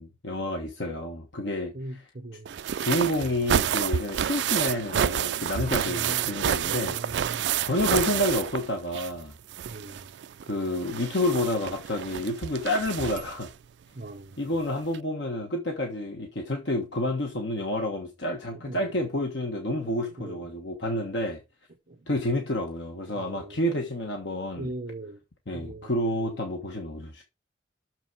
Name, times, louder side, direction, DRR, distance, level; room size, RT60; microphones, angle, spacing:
voice 1, 0.0-2.1 2.8-7.2 7.6-9.3 10.5-13.5 14.4-21.4 22.1-24.7 25.5-27.2, left 1 dB, 80° left, 1.3 m, -29 dB
voice 2, 1.7-2.6 5.9-6.2 6.6-7.6 9.7-10.1 14.0-14.4 18.5-18.9 20.2-20.4 21.9-22.0 23.1-23.6 24.6-25.2 25.5-26.4, right 2 dB, 50° right, 0.9 m, -40 dB
sound 1, 2.5-9.2 9.5-13.5 14.5-14.6 14.9-15.0, right 9 dB, 75° right, 0.4 m, -29 dB
6.6 x 6.2 x 4.6 m
head